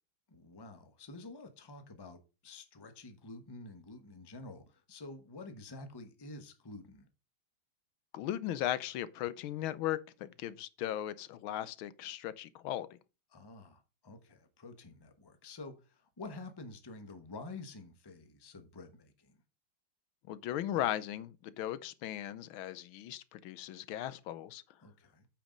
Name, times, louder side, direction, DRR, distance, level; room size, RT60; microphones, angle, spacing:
voice 1, 0.3-7.1 13.3-19.4 24.8-25.3, left 2 dB, 20° left, 0.7 m, -49 dB
voice 2, 8.1-12.9 20.3-24.6, left 12 dB, 80° left, 1.5 m, -37 dB
8.8 x 5.2 x 5.1 m
omnidirectional pair, 2.3 m